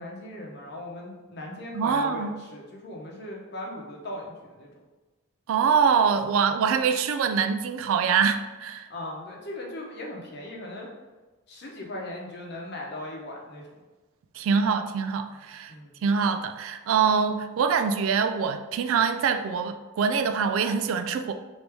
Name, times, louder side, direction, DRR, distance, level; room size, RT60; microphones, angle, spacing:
voice 1, 0.0-4.7 8.9-10.9 11.5-13.6 15.7-16.0, left 1 dB, 50° left, -1 dB, 0.8 m, -38 dB
voice 2, 1.7-2.3 5.5-8.9 14.3-15.7 16.0-21.3, right 6 dB, 70° right, 9 dB, 0.3 m, -24 dB
3.4 x 2.7 x 4.5 m, 1.2 s
head